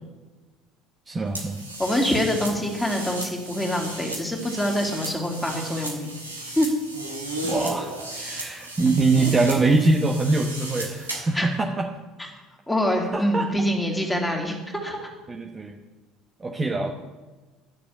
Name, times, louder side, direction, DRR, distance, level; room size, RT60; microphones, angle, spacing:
voice 1, 1.1-1.6 7.4-11.9 13.1-13.5 15.3-15.8 16.4-16.9, right 3 dB, 20° right, 2 dB, 1.1 m, -23 dB
sound 1, 1.3-11.4, right 1 dB, 90° right, 1.6 m, -35 dB
voice 2, 1.8-6.1 6.6-6.7 11.3-11.5 12.7-14.6 14.8-15.1, equal, 10° left, 1 dB, 2.7 m, -25 dB
11.0 x 6.8 x 8.4 m, 1.2 s
figure-of-eight pair, 65°, 0 cm